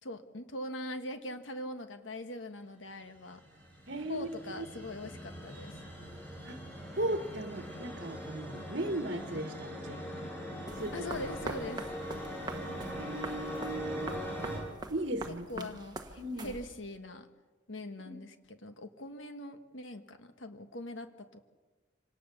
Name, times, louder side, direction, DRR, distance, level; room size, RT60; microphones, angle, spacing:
voice 1, 0.0-3.4 4.1-5.8 10.9-11.9 15.3-17.3 17.7-21.4, left 1 dB, 85° left, 8 dB, 1.4 m, -42 dB
sound 1, 3.0-14.6, equal, 10° left, 7.1 m, -41 dB
voice 2, 3.9-4.3 4.6-4.7 6.4-6.6 6.9-10.0 10.8-10.9 13.0-14.1 14.9-15.7 16.2-16.5 18.0-18.2, right 1 dB, 60° right, 7 dB, 1.4 m, -37 dB
sound 2, 10.7-17.0, right 2 dB, 20° right, 1.3 m, -44 dB
25.5 x 18.5 x 6.9 m, 1.3 s
head